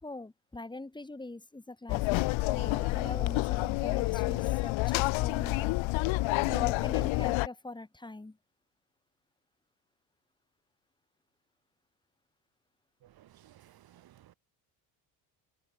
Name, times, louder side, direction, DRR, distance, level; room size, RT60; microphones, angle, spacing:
voice 1, 0.0-2.2 2.5-5.8 6.5-8.4, left 2 dB, 10° left, 3.8 m, -43 dB
sound 1, 1.9-7.5, left 21 dB, 75° left, 1.5 m, -29 dB
voice 2, 13.0-14.3, right 13 dB, 50° right, 1.9 m, -58 dB
cardioid pair, 135°, 47 cm